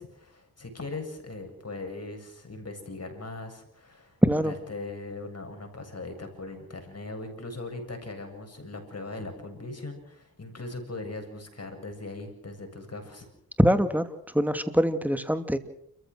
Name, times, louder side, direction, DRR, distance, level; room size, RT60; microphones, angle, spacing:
voice 1, 0.0-4.2 4.4-13.3, left 2 dB, 40° left, 4 dB, 7.6 m, -39 dB
voice 2, 4.2-4.5 13.6-14.1 14.3-15.6, equal, 5° right, 9 dB, 2.7 m, -23 dB
30.0 x 15.0 x 6.5 m, 0.71 s
supercardioid pair, 45°, 36 cm